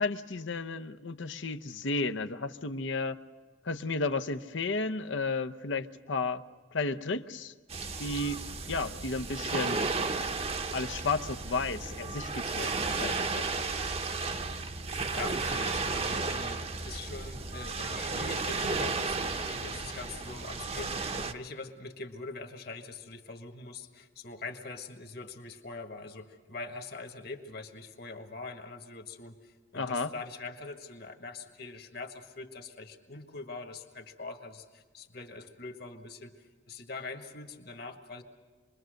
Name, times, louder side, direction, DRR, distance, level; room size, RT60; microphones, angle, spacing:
voice 1, 0.0-3.2 3.6-6.4 6.7-7.5 8.0-8.4 8.7-9.9 10.7-13.5 29.7-30.1, left 3 dB, 80° left, 9 dB, 0.8 m, -33 dB
sound 1, 7.7-21.3, right 3 dB, 30° right, 0.8 m, -33 dB
voice 2, 15.1-38.2, left 3 dB, 55° left, 5 dB, 1.7 m, -43 dB
26.5 x 22.0 x 6.5 m, 1.4 s
head